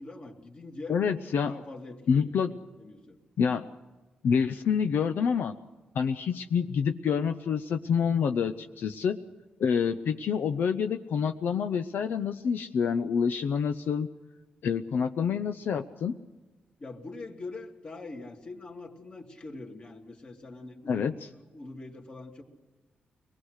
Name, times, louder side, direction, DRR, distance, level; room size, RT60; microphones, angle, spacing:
voice 1, 0.0-1.0 1.3-2.4 2.8-3.2 16.8-22.4, left 2 dB, 35° left, 2 dB, 2.6 m, -43 dB
voice 2, 0.9-1.6 2.1-2.6 3.4-3.7 4.2-5.5 5.9-9.2 9.6-14.1 14.6-16.2 20.9-21.2, left 6 dB, 75° left, 8 dB, 0.8 m, -27 dB
24.0 x 20.0 x 6.5 m, 1.2 s
wide cardioid pair, 150°, 3 cm